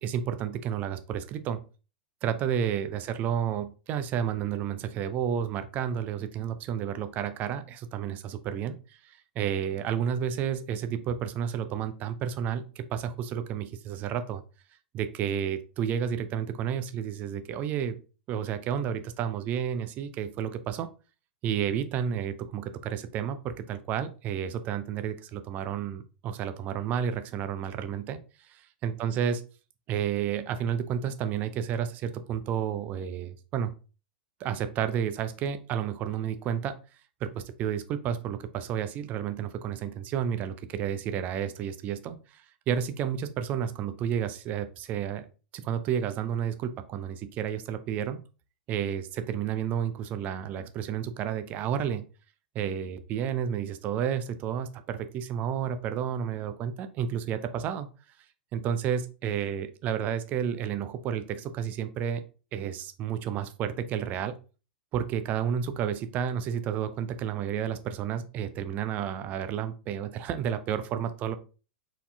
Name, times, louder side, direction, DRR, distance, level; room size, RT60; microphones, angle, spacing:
voice 1, 0.0-1.6 2.2-14.4 14.9-18.0 18.3-20.9 21.4-29.4 29.9-33.7 34.4-36.7 37.2-45.3 45.5-48.2 48.7-52.0 52.5-57.9 58.5-62.2 62.5-64.4 64.9-71.4, right 8 dB, 30° right, 10 dB, 0.5 m, -31 dB
4.1 x 4.1 x 2.7 m, 0.34 s
figure-of-eight pair, 100°, 6 cm